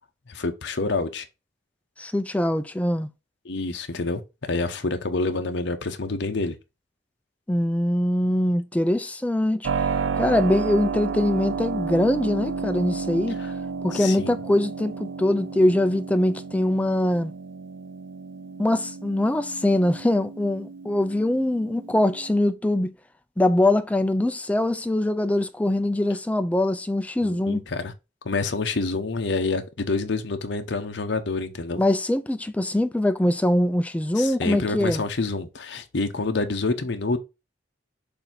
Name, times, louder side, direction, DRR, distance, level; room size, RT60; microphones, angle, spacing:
voice 1, 0.3-1.3 3.4-6.6 13.9-14.3 27.2-27.9 28.2-31.8 34.2-37.2, left 3 dB, 65° left, 0.8 m, -27 dB
voice 2, 2.0-3.1 7.5-9.7 10.1-13.4 13.8-17.3 18.6-22.9 23.4-27.6 31.8-35.0, left 1 dB, 5° left, 0.4 m, -23 dB
Keyboard (musical), 9.6-22.4, right 5 dB, 80° right, 0.4 m, -32 dB
6.7 x 2.7 x 5.7 m
head